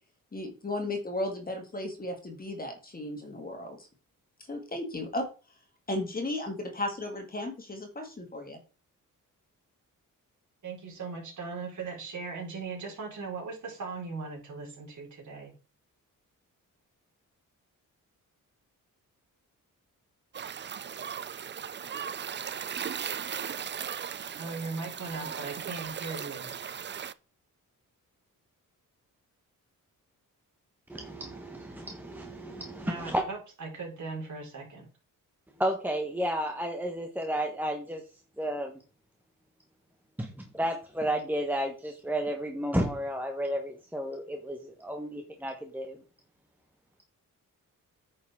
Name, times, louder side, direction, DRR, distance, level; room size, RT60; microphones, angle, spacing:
voice 1, 0.3-3.9 4.5-5.3 5.9-8.6, left 1 dB, 25° left, 2.1 m, -35 dB
voice 2, 10.6-15.5 24.4-26.5 32.8-34.9, right 4 dB, 60° right, 4.4 m, -38 dB
sound 1, 20.3-27.1, right 8 dB, 35° right, 0.4 m, -37 dB
voice 3, 30.9-33.2 35.6-38.0 38.4-38.7 40.2-46.0, equal, 5° right, 1.1 m, -32 dB
9.3 x 6.4 x 3.6 m
wide cardioid pair, 125°, 33 cm